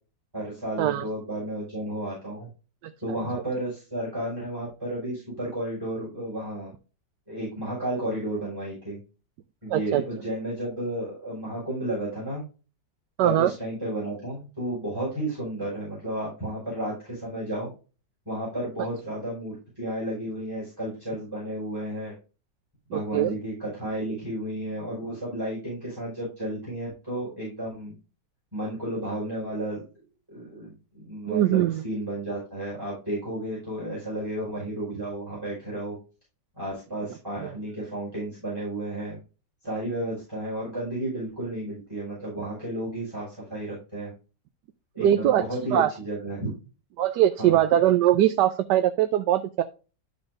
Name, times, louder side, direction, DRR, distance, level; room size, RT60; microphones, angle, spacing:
voice 1, 0.3-2.5 3.0-6.7 7.3-9.0 9.6-12.4 13.2-17.7 18.2-22.1 22.9-28.0 28.5-29.8 30.3-36.0 36.6-39.2 39.6-44.1 44.9-46.5 47.4-47.6, right 1 dB, 10° right, -7 dB, 5.0 m, -32 dB
voice 2, 2.8-3.2 9.7-10.0 13.2-13.5 22.9-23.3 31.3-31.8 37.4-37.5 45.0-45.4 45.7-45.9 47.0-49.6, right 12 dB, 75° right, 9 dB, 1.2 m, -22 dB
12.0 x 5.3 x 2.5 m, 0.33 s
omnidirectional pair, 1.9 m